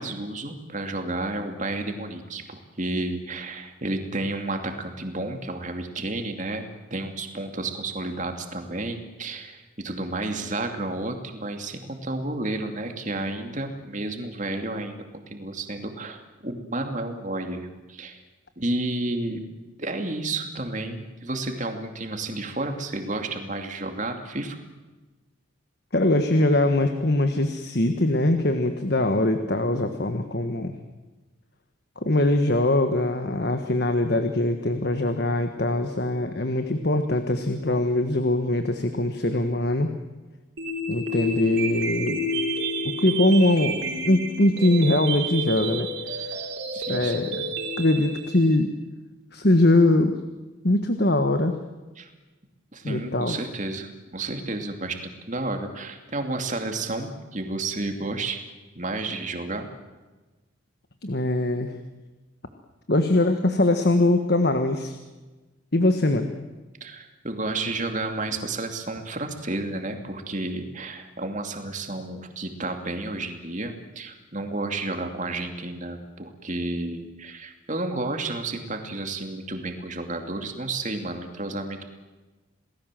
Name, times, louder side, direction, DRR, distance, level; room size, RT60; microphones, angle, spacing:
voice 1, 0.0-18.2 18.6-19.4 19.8-24.6 46.7-47.3 52.0-52.1 52.7-58.4 58.8-59.7 66.8-81.8, right 2 dB, 35° right, 5 dB, 2.7 m, -31 dB
voice 2, 25.9-30.7 32.0-39.9 40.9-42.2 42.8-46.5 46.9-47.4 47.8-48.7 49.3-50.1 50.6-51.5 52.8-53.4 61.0-61.7 62.9-65.0 65.7-66.3, left 1 dB, 50° left, 7 dB, 1.5 m, -22 dB
sound 1, 40.6-48.6, equal, 55° right, 4.3 m, -30 dB
28.0 x 19.5 x 7.7 m, 1.2 s
head